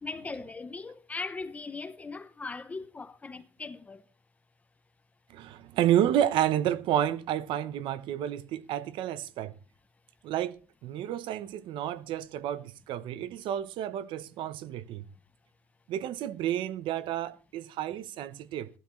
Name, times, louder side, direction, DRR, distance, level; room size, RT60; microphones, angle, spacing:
voice 1, 0.0-4.0, left 3 dB, 15° left, 0.7 m, -39 dB
voice 2, 5.3-9.5 10.2-15.0 15.9-18.7, right 11 dB, 60° right, 0.9 m, -30 dB
16.0 x 12.0 x 3.1 m
cardioid pair, 165°, 10 cm